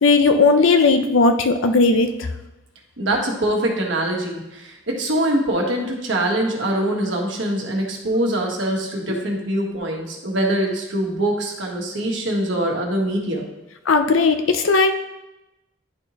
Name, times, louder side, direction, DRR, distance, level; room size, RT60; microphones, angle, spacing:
voice 1, 0.0-2.3 13.9-14.9, left 3 dB, 80° left, 8 dB, 0.6 m, -16 dB
voice 2, 3.0-13.4, right 1 dB, 65° right, 0 dB, 1.4 m, -23 dB
11.0 x 4.4 x 3.0 m, 0.95 s
head